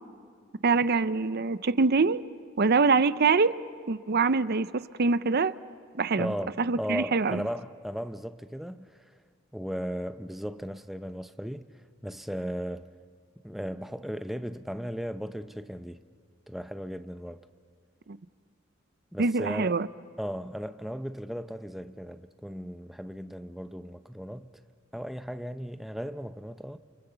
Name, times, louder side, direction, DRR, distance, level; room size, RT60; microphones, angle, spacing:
voice 1, 0.6-2.2 2.6-3.6 3.9-5.5 6.0-7.4 18.1-18.2 19.2-19.9, right 4 dB, 55° right, 0.6 m, -24 dB
voice 2, 6.1-9.1 9.5-11.7 12.0-12.9 13.4-16.0 16.5-17.4 19.1-19.7 20.2-24.5 24.9-26.8, equal, ahead, 0.7 m, -36 dB
29.5 x 28.5 x 6.9 m
head